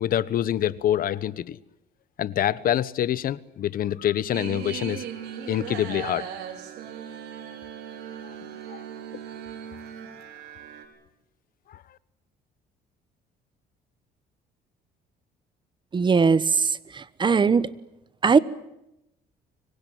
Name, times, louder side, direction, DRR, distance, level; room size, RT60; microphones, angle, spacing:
voice 1, 0.0-1.6 2.2-5.0 5.5-6.3 8.7-8.8, left 11 dB, 60° left, 1.1 m, -26 dB
sound 1, 4.3-10.9, right 9 dB, 85° right, 5.4 m, -38 dB
voice 2, 15.9-17.7 18.2-18.4, right 5 dB, 30° right, 1.1 m, -20 dB
25.5 x 23.0 x 9.3 m
cardioid pair, 110°, 17 cm